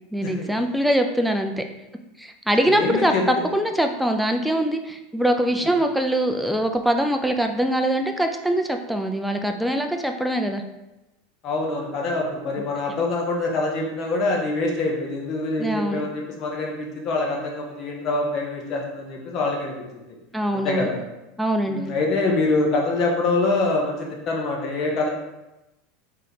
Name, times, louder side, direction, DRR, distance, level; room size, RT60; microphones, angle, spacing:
voice 1, 0.1-1.6 2.2-10.6 15.6-16.0 20.3-20.9 21.4-21.8, right 1 dB, ahead, 5 dB, 0.3 m, -23 dB
voice 2, 2.6-3.4 5.6-5.7 11.4-19.8 20.5-21.0 21.7-25.1, left 3 dB, 45° left, 0 dB, 0.9 m, -25 dB
3.2 x 2.8 x 3.8 m, 0.98 s
supercardioid pair, 130°, 0 cm